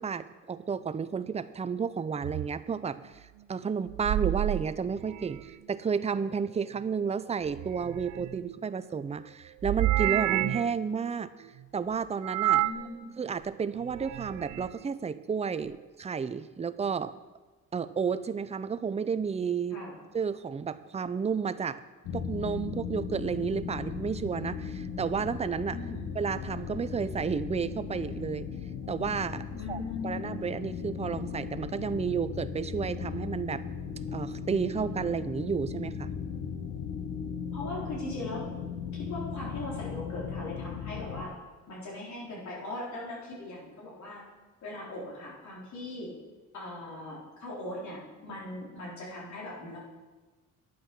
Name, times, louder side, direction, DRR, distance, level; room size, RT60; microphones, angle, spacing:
voice 1, 0.0-3.1 3.5-11.3 11.7-12.6 13.2-17.1 17.7-19.8 20.1-21.8 22.1-25.8 26.2-28.5 28.9-33.6 34.1-36.1, right 6 dB, 20° right, 13 dB, 0.5 m, -32 dB
sound 1, 2.2-2.5 3.9-5.5 7.4-8.6 9.6-10.8 12.2-12.9 13.8-14.7, right 15 dB, 75° right, 0.5 m, -30 dB
voice 2, 12.5-13.1 19.7-20.0 25.7-26.1 29.5-30.4 37.5-38.5 38.9-41.3 41.7-44.2 44.6-46.1 46.5-49.8, left 2 dB, 70° left, -5 dB, 3.9 m, -39 dB
sound 2, 22.0-41.2, left 7 dB, 85° left, 1.3 m, -37 dB
10.5 x 8.4 x 6.0 m, 1.2 s
cardioid pair, 90°, 30 cm